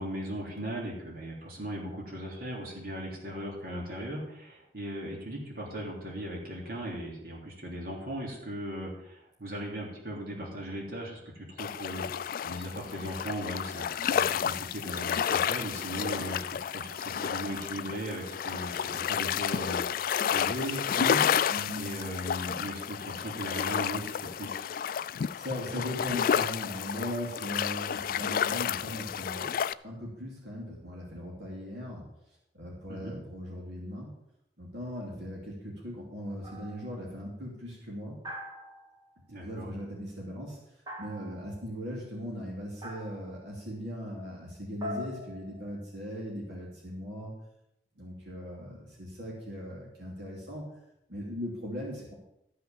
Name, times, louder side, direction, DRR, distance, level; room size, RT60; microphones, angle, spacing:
voice 1, 0.0-12.0 12.4-21.2 21.7-24.6 32.9-33.2 39.3-39.7, equal, 55° right, -2 dB, 3.3 m, -38 dB
sound 1, 11.6-29.7, left 8 dB, 50° left, 0.3 m, -31 dB
voice 2, 21.5-22.0 25.4-29.6 29.8-32.0 32.5-34.1 34.6-38.2 39.4-40.6 41.0-47.3 48.0-50.7 51.1-52.1, equal, 75° right, -3 dB, 2.8 m, -39 dB
sound 2, 36.4-36.9 38.2-39.2 40.9-41.6 42.8-43.4 44.8-46.1, left 1 dB, 25° right, 2.3 m, -42 dB
13.5 x 5.9 x 7.0 m, 0.79 s
head